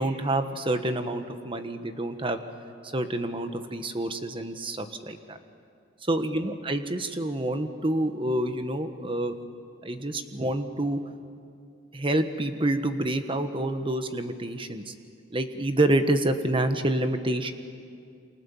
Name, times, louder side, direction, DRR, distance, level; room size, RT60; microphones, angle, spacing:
voice 1, 0.0-2.4 2.9-5.4 6.1-9.4 9.8-11.0 11.9-14.9 15.3-17.5, right 1 dB, 30° right, 8 dB, 1.5 m, -27 dB
29.0 x 26.5 x 7.3 m, 2.4 s
head